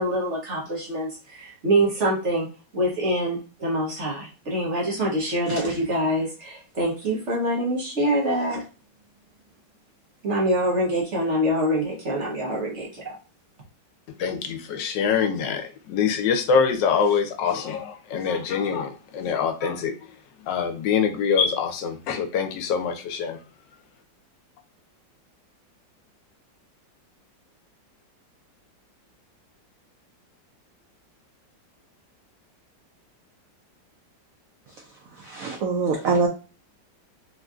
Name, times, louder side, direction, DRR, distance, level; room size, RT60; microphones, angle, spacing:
voice 1, 0.0-2.5 2.7-8.6 10.2-13.1, right 1 dB, 55° right, 0.9 m, -25 dB
voice 2, 14.2-20.0 20.4-23.4, left 6 dB, 80° left, 1.2 m, -24 dB
voice 3, 35.3-36.3, right 4 dB, 75° right, 0.7 m, -23 dB
3.6 x 2.5 x 2.3 m
omnidirectional pair, 2.0 m